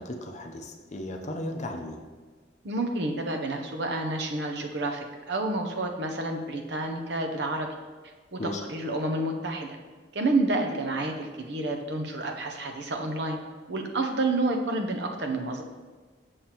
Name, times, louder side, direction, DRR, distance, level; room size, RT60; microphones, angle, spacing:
voice 1, 0.0-2.0 8.4-8.6, left 1 dB, 40° left, 4 dB, 0.6 m, -35 dB
voice 2, 2.6-7.7 8.3-8.4 8.7-9.8 10.1-13.4 13.7-15.6, right 2 dB, 65° right, 4 dB, 0.7 m, -29 dB
7.3 x 6.5 x 3.0 m, 1.4 s
head